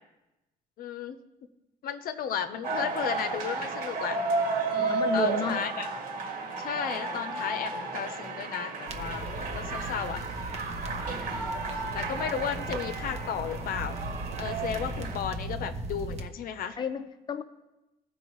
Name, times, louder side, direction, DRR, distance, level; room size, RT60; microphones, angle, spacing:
voice 1, 0.8-1.2 1.8-4.2 4.7-5.9 6.6-10.2 11.2-14.0 14.4-16.8, left 8 dB, 60° left, 9 dB, 0.7 m, -34 dB
sound 1, 2.6-15.2, right 3 dB, 60° right, 1.9 m, -33 dB
voice 2, 4.8-5.6 16.8-17.4, left 6 dB, 25° left, 7 dB, 0.6 m, -32 dB
sound 2, 8.9-16.3, right 1 dB, 40° right, 0.9 m, -38 dB
15.0 x 5.3 x 3.1 m, 1.0 s
cardioid pair, 110°, 17 cm